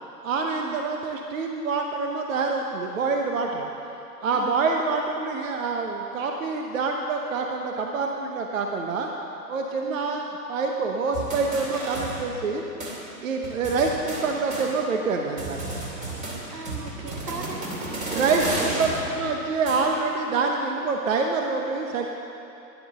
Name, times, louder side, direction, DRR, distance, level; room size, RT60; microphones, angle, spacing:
voice 1, 0.2-3.7 4.2-9.1 9.5-12.6 13.2-15.7 18.1-22.1, right 4 dB, 50° right, 2 dB, 1.1 m, -26 dB
voice 2, 4.3-4.7 9.8-10.0 16.5-18.9, right 3 dB, 70° right, 3 dB, 1.9 m, -38 dB
sound 1, 11.1-12.5 12.8-12.9 13.4-15.1 15.4-20.2, right 2 dB, 15° right, 2.5 m, -33 dB
13.5 x 10.5 x 6.7 m, 3.0 s
figure-of-eight pair, 120°, 50 cm